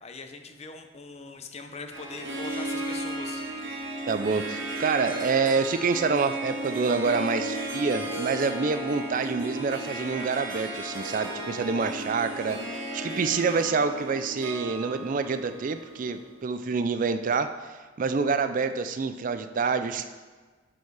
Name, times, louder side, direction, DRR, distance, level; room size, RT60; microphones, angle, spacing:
voice 1, 0.0-3.4, left 4 dB, 35° left, 6 dB, 0.7 m, -41 dB
Harp, 1.9-16.4, right 1 dB, 90° right, 1.6 m, -35 dB
voice 2, 4.1-12.6 12.9-17.5 18.0-20.1, right 4 dB, 45° right, 10 dB, 0.4 m, -27 dB
11.5 x 4.5 x 4.8 m, 1.4 s
head